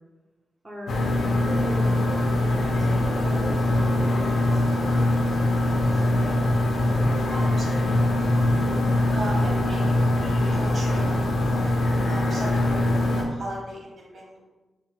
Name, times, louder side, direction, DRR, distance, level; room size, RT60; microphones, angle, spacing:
voice 1, 0.6-1.1 1.4-1.9 2.6-5.2 5.5-6.1 9.4-9.7, right 1 dB, 15° right, -5 dB, 0.4 m, -39 dB
sound 1, 0.9-13.2, left 1 dB, 55° left, 0.5 m, -22 dB
voice 2, 7.3-7.8 9.1-10.0 10.5-11.2 12.0-14.4, right 1 dB, 40° right, -4 dB, 1.2 m, -37 dB
3.8 x 2.1 x 3.8 m, 1.2 s
wide cardioid pair, 175°, 0 cm